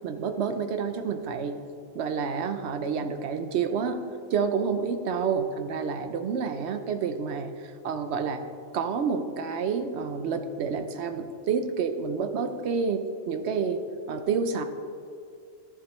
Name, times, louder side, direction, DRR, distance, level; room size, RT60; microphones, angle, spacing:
voice 1, 0.0-1.6 1.9-4.0 4.3-8.4 8.7-13.8 14.1-14.6, right 6 dB, 65° right, 8 dB, 0.9 m, -29 dB
11.0 x 10.0 x 3.1 m, 2.4 s
omnidirectional pair, 1.3 m